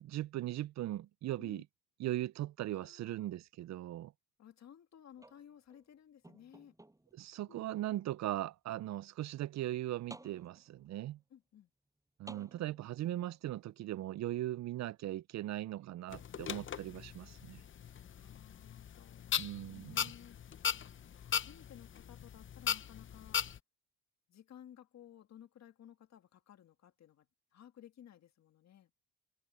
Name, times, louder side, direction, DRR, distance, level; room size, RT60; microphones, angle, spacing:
voice 1, 0.0-1.6 2.0-4.1 7.2-11.2 12.2-17.6 19.4-20.0, right 14 dB, 65° right, 0.5 m, -39 dB
voice 2, 2.7-3.3 4.4-6.7 7.5-7.6 11.3-11.7 18.1-20.4 21.2-23.4 24.3-27.3 27.5-28.9, left 10 dB, 60° left, 2.0 m, -57 dB
sound 1, 5.2-5.8 6.2-7.2 8.0-8.1 9.6-9.7 10.1-10.9 12.3-13.1 14.2-14.3, right 1 dB, 10° right, 7.5 m, -55 dB
sound 2, 16.1-23.6, left 8 dB, 40° left, 0.8 m, -39 dB
cardioid pair, 90°, 30 cm